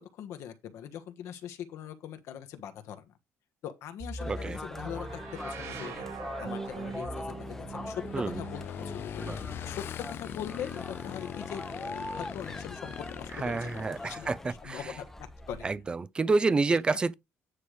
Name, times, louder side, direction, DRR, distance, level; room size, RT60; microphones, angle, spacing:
voice 1, 0.0-3.1 3.6-15.7 16.7-16.8, left 9 dB, 65° left, 1.3 m, -42 dB
sound 1, 4.0-13.8 14.8-15.9, right 3 dB, 65° right, 2.9 m, -43 dB
sound 2, 4.2-15.7, left 1 dB, 5° left, 0.8 m, -43 dB
voice 2, 4.3-4.6 8.1-8.4 9.3-9.4 13.4-14.8 15.6-17.1, right 3 dB, 15° right, 0.4 m, -28 dB
Motorcycle / Engine, 4.9-14.6, left 10 dB, 45° left, 0.4 m, -42 dB
9.6 x 3.3 x 6.3 m
cardioid pair, 155°, 5 cm